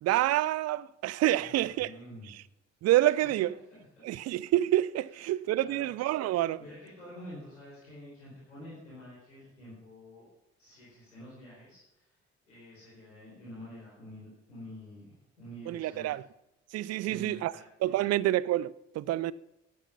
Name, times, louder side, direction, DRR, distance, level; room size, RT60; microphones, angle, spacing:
voice 1, 0.0-1.9 2.8-3.5 4.0-6.6 15.7-16.2 16.7-17.5 17.8-19.3, right 14 dB, 45° right, 0.5 m, -27 dB
voice 2, 1.4-2.3 3.2-3.4 4.1-4.2 5.1-5.9 6.5-10.3 10.6-12.2 12.4-16.1 17.0-18.1, equal, 85° left, 4.7 m, -48 dB
14.0 x 11.0 x 5.7 m
figure-of-eight pair, 45°, 36 cm